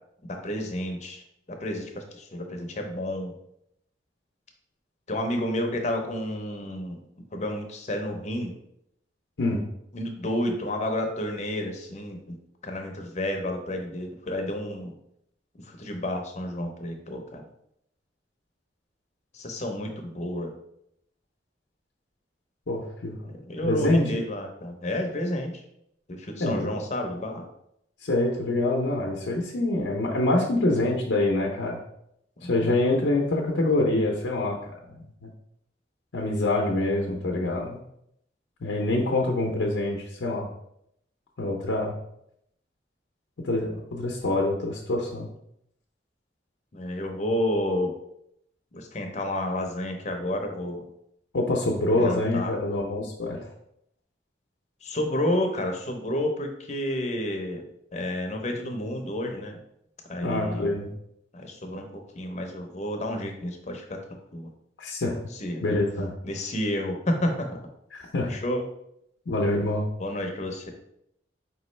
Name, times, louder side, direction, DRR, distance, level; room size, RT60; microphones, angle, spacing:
voice 1, 0.3-3.3 5.1-7.0 7.3-8.5 9.9-12.4 12.6-14.9 15.6-17.4 19.3-20.5 23.2-25.5 26.1-27.5 32.4-32.7 46.7-48.0 48.7-50.8 51.9-52.5 54.8-57.6 57.9-59.6 60.1-60.8 61.3-64.0 64.3-64.5 65.3-65.8 66.2-67.6 68.2-68.6 70.0-70.7, left 1 dB, 40° left, 3 dB, 0.7 m, -30 dB
voice 2, 22.7-23.2 23.6-24.0 26.4-26.7 28.0-31.8 32.4-34.7 35.2-35.3 36.1-37.8 38.6-40.5 41.4-42.0 43.4-45.3 51.3-53.5 60.2-60.9 64.8-65.2 65.6-66.1 67.9-68.4 69.3-69.9, left 2 dB, 80° left, -1 dB, 0.6 m, -25 dB
4.7 x 3.1 x 3.2 m, 0.76 s
head